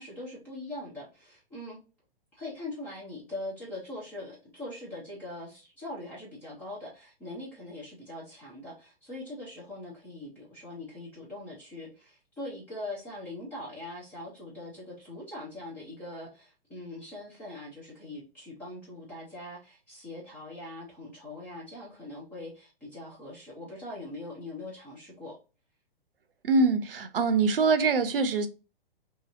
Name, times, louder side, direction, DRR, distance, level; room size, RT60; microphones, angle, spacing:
voice 1, 0.0-1.8 2.3-25.4, left 1 dB, 5° left, 0.3 m, -42 dB
voice 2, 26.4-28.5, right 4 dB, 70° right, 0.6 m, -24 dB
2.8 x 2.7 x 2.4 m
figure-of-eight pair, 115°, 30 cm